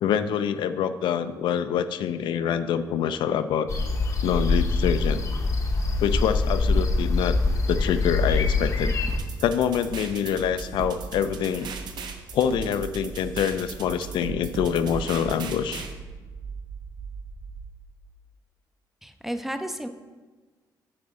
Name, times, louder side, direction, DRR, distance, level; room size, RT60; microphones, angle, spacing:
voice 1, 0.0-3.7 4.2-5.2 6.0-7.4 7.7-8.9 9.4-11.7 12.3-15.9, left 8 dB, 75° left, 11 dB, 0.4 m, -25 dB
sound 1, 3.7-9.2, left 3 dB, 40° left, 0.7 m, -24 dB
sound 2, 9.1-15.9, right 5 dB, 65° right, 0.7 m, -38 dB
sound 3, 9.7-17.6, right 5 dB, 90° right, 2.3 m, -40 dB
voice 2, 19.0-19.9, equal, 5° right, 8 dB, 0.3 m, -32 dB
8.8 x 4.3 x 3.7 m, 1.3 s
cardioid pair, 130°, 8 cm